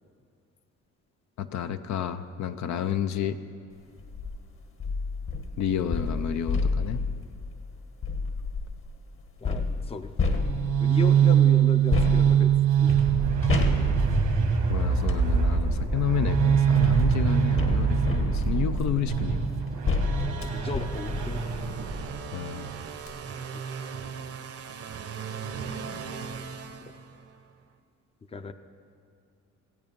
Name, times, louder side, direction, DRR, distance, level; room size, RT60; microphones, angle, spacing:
voice 1, 1.4-3.4 5.6-7.0 14.7-19.5 22.3-22.7, left 9 dB, 65° left, 10 dB, 0.6 m, -30 dB
sound 1, 4.0-4.3 4.8-8.8 9.4-11.0 11.9-15.3 16.2-22.1 22.6-22.7 23.0-23.1, left 3 dB, 45° left, 1.3 m, -30 dB
voice 2, 9.4-10.1 10.8-12.5 12.8-13.0 20.4-21.4 28.3-28.5, left 3 dB, 20° left, 10 dB, 0.6 m, -35 dB
sound 2, 10.3-22.2, right 7 dB, 80° right, 1.5 m, -23 dB
sound 3, 20.6-27.5, right 6 dB, 50° right, 0.8 m, -39 dB
16.0 x 8.6 x 5.3 m, 2.4 s
cardioid pair, 90°, 30 cm